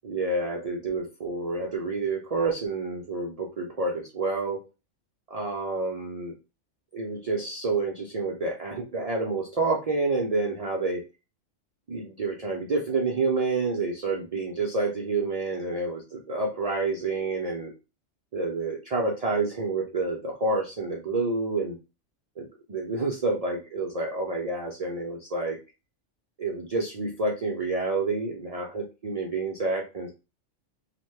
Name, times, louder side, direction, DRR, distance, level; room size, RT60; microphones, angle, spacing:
voice 1, 0.0-4.6 5.3-6.3 6.9-11.0 11.9-17.7 18.3-21.8 22.4-25.6 26.4-30.1, right 3 dB, 70° right, -2 dB, 0.3 m, -28 dB
2.9 x 2.1 x 3.1 m, 0.30 s
omnidirectional pair, 1.3 m